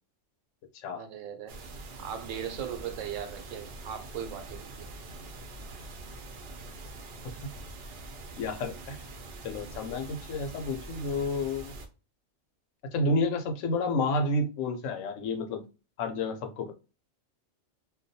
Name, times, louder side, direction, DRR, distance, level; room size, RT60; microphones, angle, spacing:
voice 1, 0.9-1.6 2.0-4.9, right 8 dB, 85° right, 1.0 m, -38 dB
sound 1, 1.5-11.9, right 2 dB, 60° right, 0.7 m, -44 dB
voice 2, 8.4-9.0 9.4-11.7 12.9-15.6 16.0-16.8, left 2 dB, 80° left, 0.9 m, -30 dB
2.2 x 2.2 x 2.6 m
omnidirectional pair, 1.3 m